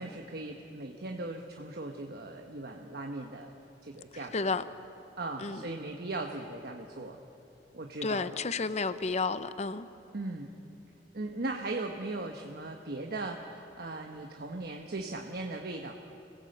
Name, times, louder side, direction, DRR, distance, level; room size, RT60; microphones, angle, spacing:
voice 1, 0.0-3.5 3.8-4.6 5.2-7.2 7.7-8.4 10.1-10.5 11.1-15.9, right 2 dB, 60° right, 3 dB, 1.1 m, -38 dB
voice 2, 4.3-4.6 5.4-5.6 8.0-9.9, left 4 dB, 40° left, 13 dB, 0.7 m, -31 dB
25.0 x 16.5 x 7.8 m, 2.9 s
head